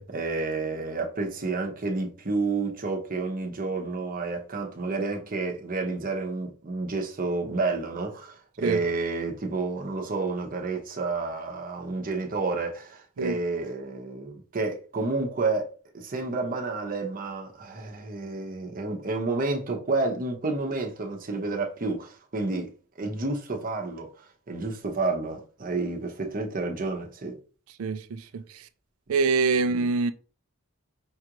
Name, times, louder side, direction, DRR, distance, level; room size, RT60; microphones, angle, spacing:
voice 1, 0.0-22.7 23.0-24.1 24.5-27.4, right 3 dB, 40° right, 0.8 m, -30 dB
voice 2, 27.8-28.4 29.1-30.1, right 4 dB, 70° right, 0.4 m, -25 dB
5.5 x 2.4 x 2.9 m
head